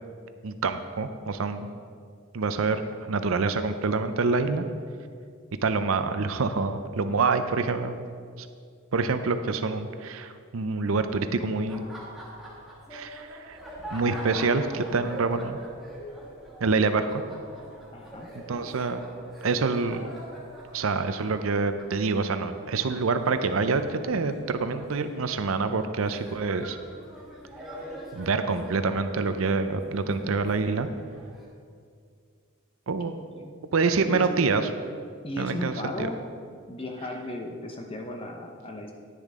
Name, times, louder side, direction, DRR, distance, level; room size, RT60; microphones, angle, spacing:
voice 1, 0.4-1.7 2.3-2.8 3.1-4.7 5.6-8.0 8.4-8.5 8.9-11.8 12.9-13.6 13.9-15.6 16.6-17.2 18.3-19.0 19.4-20.0 20.7-26.8 28.1-30.9 32.9-33.2 33.7-34.6 35.4-36.1, right 4 dB, 75° right, 9 dB, 0.6 m, -26 dB
Laughter, 11.6-31.5, right 1 dB, ahead, 1.6 m, -44 dB
voice 2, 17.9-18.3 33.1-33.5 34.0-34.3 35.2-36.2 36.7-38.9, left 1 dB, 25° left, 2 dB, 0.9 m, -35 dB
10.0 x 9.9 x 3.7 m, 2.2 s
head